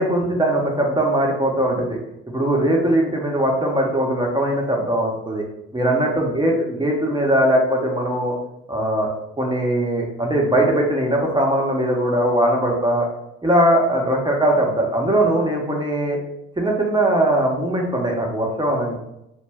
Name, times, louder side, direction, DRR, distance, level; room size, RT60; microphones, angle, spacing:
voice 1, 0.0-2.0 2.3-5.4 5.7-8.3 8.7-9.1 9.4-13.1 13.4-16.2 16.6-19.0, right 1 dB, 15° right, -1 dB, 0.7 m, -20 dB
2.3 x 2.0 x 3.3 m, 0.85 s
hypercardioid pair, 45°, 35 cm